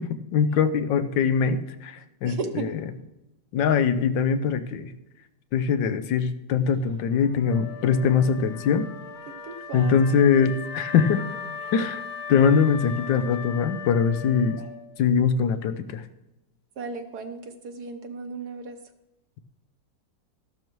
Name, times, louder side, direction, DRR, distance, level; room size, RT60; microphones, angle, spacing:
voice 1, 0.0-2.7 3.5-4.9 5.5-8.9 9.7-11.2 11.7-14.6 15.0-16.0, left 6 dB, 80° left, 10 dB, 1.4 m, -22 dB
voice 2, 2.2-2.7 9.3-10.0 14.6-14.7 16.8-18.8, right 4 dB, 65° right, 6 dB, 1.4 m, -35 dB
Trumpet, 6.9-14.5, left 3 dB, 60° left, 2.2 m, -50 dB
Wind instrument woodwind instrument, 7.4-15.0, left 4 dB, 40° left, 1.5 m, -38 dB
13.5 x 12.0 x 3.1 m, 0.95 s
omnidirectional pair, 2.0 m